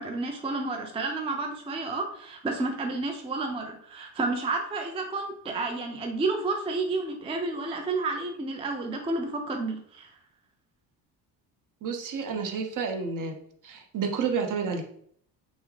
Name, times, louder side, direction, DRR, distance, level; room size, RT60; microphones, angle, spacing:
voice 1, 0.0-10.1, right 3 dB, 15° right, 3 dB, 0.4 m, -31 dB
voice 2, 11.8-13.4 13.6-14.8, right 5 dB, 40° right, 4 dB, 0.7 m, -30 dB
3.3 x 2.1 x 3.1 m, 0.64 s
hypercardioid pair, 55°, 49 cm